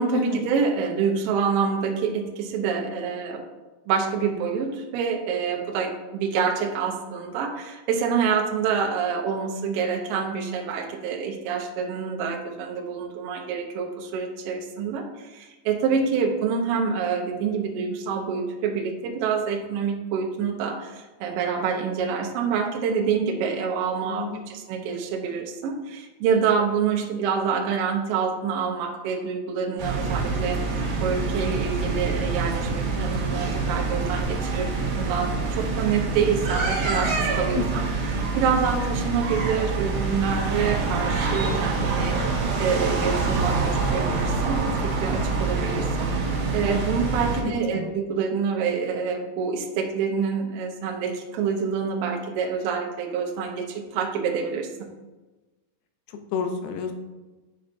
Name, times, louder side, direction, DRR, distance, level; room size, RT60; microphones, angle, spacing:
voice 1, 0.0-3.4 3.9-34.7 35.0-37.9 38.1-42.2 42.6-46.1 46.5-54.9, right 6 dB, 75° right, 1 dB, 2.2 m, -27 dB
voice 2, 24.1-24.5 37.5-37.9 47.3-47.9 56.3-56.9, left 6 dB, 80° left, 6 dB, 2.5 m, -30 dB
sound 1, 29.8-47.4, right 3 dB, 60° right, 2.6 m, -26 dB
9.1 x 5.6 x 2.6 m, 1.2 s
omnidirectional pair, 4.8 m